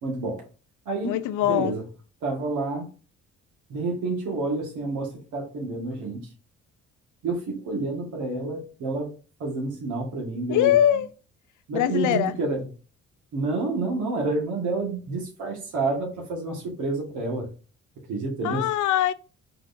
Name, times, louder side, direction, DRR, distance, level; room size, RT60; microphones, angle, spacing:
voice 1, 0.0-0.5 0.9-1.8 2.2-2.9 3.7-6.3 7.2-9.1 9.4-11.0 11.7-12.7 13.3-17.5 18.1-18.7, right 3 dB, 75° right, 1.8 m, -29 dB
voice 2, 1.0-1.7 10.5-11.1 11.7-12.3 18.4-19.1, left 11 dB, 80° left, 0.5 m, -22 dB
4.7 x 4.1 x 2.7 m
cardioid pair, 90°, 30 cm